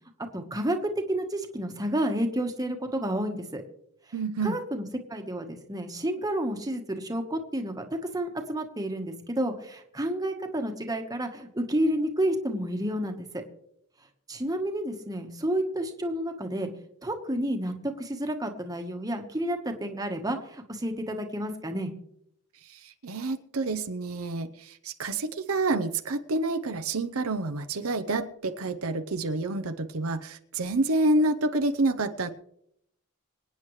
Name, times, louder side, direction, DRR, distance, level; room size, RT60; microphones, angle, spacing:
voice 1, 0.3-0.8 1.1-3.6 4.4-4.8 5.1-7.8 8.1-13.3 14.3-16.7 17.0-21.9, right 1 dB, 15° right, 4 dB, 1.3 m, -30 dB
voice 2, 4.1-4.6 22.7-32.3, right 2 dB, 75° right, 7 dB, 0.8 m, -28 dB
25.5 x 9.3 x 3.2 m, 0.72 s
head